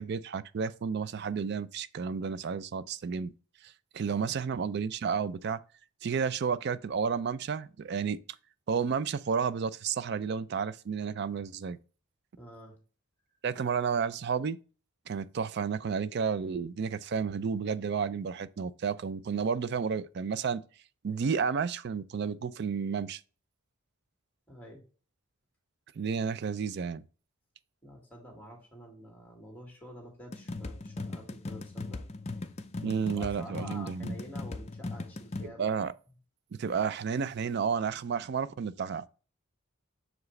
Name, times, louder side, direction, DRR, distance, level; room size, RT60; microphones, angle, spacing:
voice 1, 0.0-3.3 3.6-5.6 6.0-8.2 8.7-11.8 13.4-14.6 15.1-20.6 21.0-23.2 26.0-27.0 32.8-34.1 35.4-35.9 36.5-39.0, right 6 dB, 50° right, 0.3 m, -31 dB
voice 2, 12.4-12.8 24.5-24.8 27.8-32.0 32.8-35.7, equal, 5° left, 1.8 m, -48 dB
sound 1, 30.3-35.5, left 2 dB, 30° left, 0.4 m, -38 dB
6.6 x 4.7 x 3.2 m
head